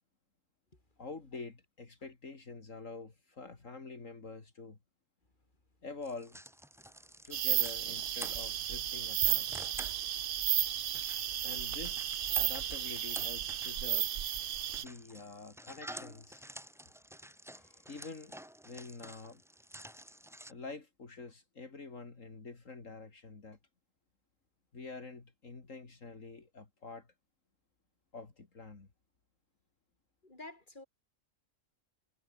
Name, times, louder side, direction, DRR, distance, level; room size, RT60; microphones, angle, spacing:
voice 1, 1.0-4.8 5.8-6.4 7.2-9.5 11.4-14.1 14.7-16.4 17.5-18.4 18.6-19.4 20.5-23.6 24.7-27.1 28.1-28.9, left 3 dB, 70° left, 3.2 m, -47 dB
sound 1, 6.0-20.5, equal, 5° right, 0.5 m, -50 dB
sound 2, 7.3-14.8, right 11 dB, 60° right, 0.6 m, -33 dB
voice 2, 30.2-30.9, left 2 dB, 35° left, 4.7 m, -50 dB
omnidirectional pair, 1.4 m